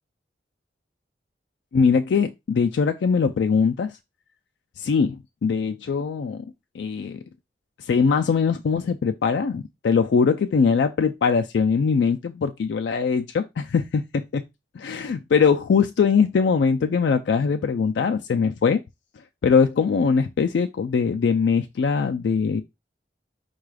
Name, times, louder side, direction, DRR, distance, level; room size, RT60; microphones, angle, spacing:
voice 1, 1.7-4.0 4.8-6.4 6.7-7.2 7.8-14.4 14.8-18.8 19.4-22.6, left 5 dB, 75° left, 0.3 m, -21 dB
4.7 x 2.3 x 4.7 m
head